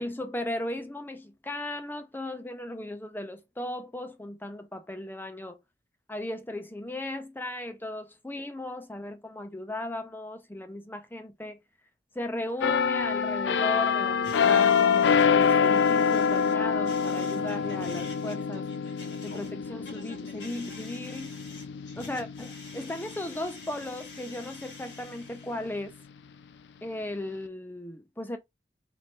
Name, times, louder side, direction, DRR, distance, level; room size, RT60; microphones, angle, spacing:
voice 1, 0.0-5.6 6.1-11.6 12.1-18.7 19.2-21.3 22.0-25.9 26.8-28.4, left 1 dB, 10° left, 0.6 m, -36 dB
sound 1, 12.6-24.1 24.6-24.8, left 6 dB, 70° left, 0.4 m, -26 dB
sound 2, 14.2-25.8, left 3 dB, 90° left, 1.8 m, -48 dB
4.3 x 2.8 x 3.2 m
head